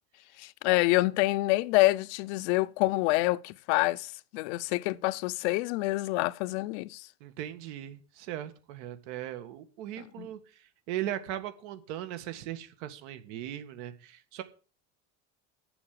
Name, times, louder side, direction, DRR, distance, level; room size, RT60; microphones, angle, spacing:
voice 1, 0.4-7.0 10.0-10.3, left 20 dB, 75° left, 0.7 m, -27 dB
voice 2, 7.2-10.4 10.9-14.4, right 12 dB, 75° right, 2.0 m, -38 dB
9.6 x 7.1 x 8.6 m
supercardioid pair, 130°, 35 cm